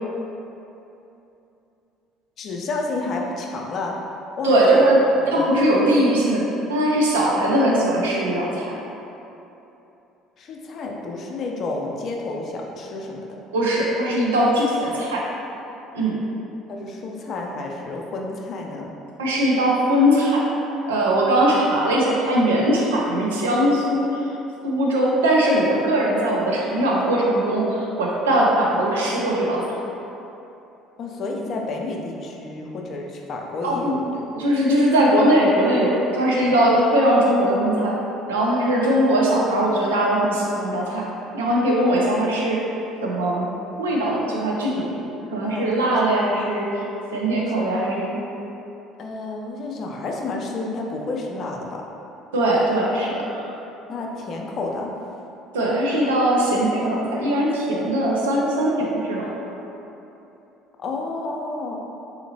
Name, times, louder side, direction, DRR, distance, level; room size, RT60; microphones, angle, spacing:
voice 1, 2.4-4.0 4.4-4.8 5.4-5.5 10.4-13.4 16.7-19.0 31.0-34.1 36.4-36.5 45.4-46.3 47.4-47.7 49.0-51.9 53.9-55.0 60.8-61.8, left 3 dB, 45° left, 0 dB, 0.4 m, -30 dB
voice 2, 4.4-5.0 5.3-6.4 6.7-8.7 13.5-15.2 15.9-16.2 19.2-20.4 20.9-24.2 24.6-29.6 33.6-38.0 38.3-41.0 41.3-42.6 43.0-43.5 43.8-46.7 47.1-48.2 52.3-53.5 55.5-59.3, right 1 dB, 75° right, -4 dB, 0.5 m, -20 dB
3.7 x 2.8 x 2.7 m, 2.9 s
figure-of-eight pair, 55°, 0 cm